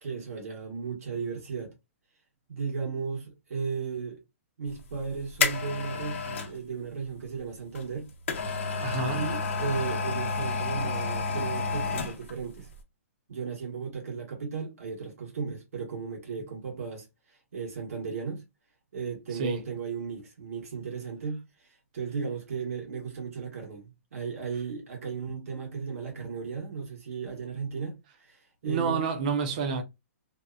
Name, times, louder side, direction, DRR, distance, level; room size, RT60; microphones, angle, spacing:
voice 1, 0.0-1.7 2.5-4.2 4.6-8.1 9.1-12.7 13.3-18.4 18.9-29.1, right 5 dB, 75° right, 1.1 m, -35 dB
sound 1, 4.8-6.6 7.7-12.4 12.7-12.8, left 4 dB, 55° left, 0.7 m, -30 dB
voice 2, 8.8-9.3 19.4-19.6 28.6-29.8, right 4 dB, 35° right, 0.5 m, -28 dB
2.7 x 2.1 x 2.3 m
hypercardioid pair, 175°, 8 cm